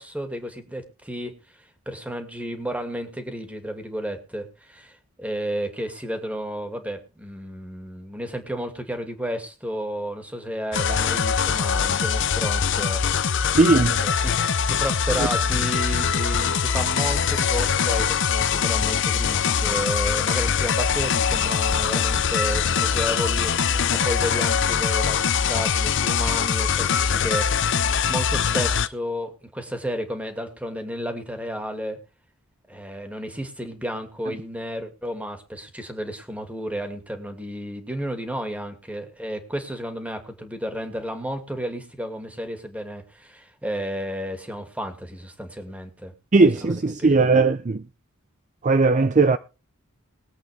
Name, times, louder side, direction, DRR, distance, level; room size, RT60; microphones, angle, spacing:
voice 1, 0.0-1.3 1.9-13.6 14.0-23.5 23.9-32.0 32.7-46.1 46.6-47.4, equal, 5° right, 2.3 m, -32 dB
sound 1, 10.7-28.9, left 7 dB, 60° left, 0.7 m, -22 dB
voice 2, 13.6-14.0 46.3-47.8 48.6-49.4, right 3 dB, 35° right, 0.5 m, -18 dB
21.5 x 8.2 x 3.5 m
head